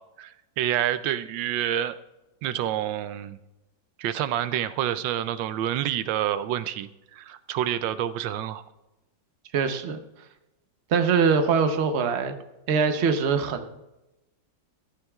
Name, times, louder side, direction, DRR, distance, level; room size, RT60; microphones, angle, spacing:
voice 1, 0.2-2.0 2.4-3.4 4.0-8.6, right 11 dB, 90° right, 13 dB, 1.3 m, -28 dB
voice 2, 9.5-10.0 10.9-12.3 12.7-13.8, right 5 dB, 50° right, 7 dB, 0.9 m, -23 dB
14.5 x 14.0 x 2.4 m, 0.96 s
omnidirectional pair, 2.0 m